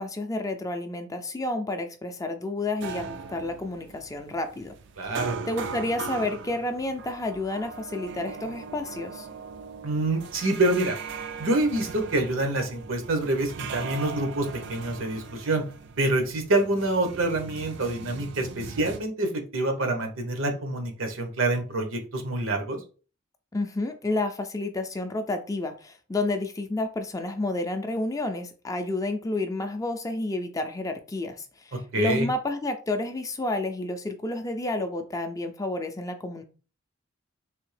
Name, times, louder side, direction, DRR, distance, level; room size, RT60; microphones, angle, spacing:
voice 1, 0.0-4.7 5.1-9.3 23.5-36.4, left 2 dB, 15° left, 7 dB, 0.4 m, -30 dB
sound 1, 2.8-19.0, right 5 dB, 60° right, 0.4 m, -39 dB
voice 2, 5.0-5.4 9.8-11.0 11.4-15.6 16.0-22.8 31.9-32.3, right 2 dB, 80° right, 5 dB, 0.9 m, -26 dB
3.4 x 2.7 x 3.2 m, 0.36 s
head